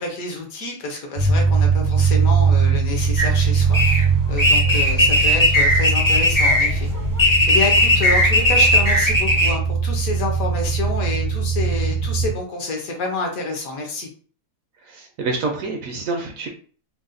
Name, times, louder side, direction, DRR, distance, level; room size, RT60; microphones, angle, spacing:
voice 1, 0.0-4.0 4.3-6.9 7.5-14.1, left 2 dB, 65° left, 1 dB, 1.2 m, -28 dB
sound 1, 1.2-12.3, right 5 dB, 50° right, 0.5 m, -21 dB
sound 2, 3.2-9.5, left 1 dB, 25° left, 0.4 m, -17 dB
voice 2, 14.8-16.5, right 3 dB, 70° right, 2 dB, 0.9 m, -27 dB
3.9 x 2.1 x 2.5 m, 0.41 s
omnidirectional pair, 1.7 m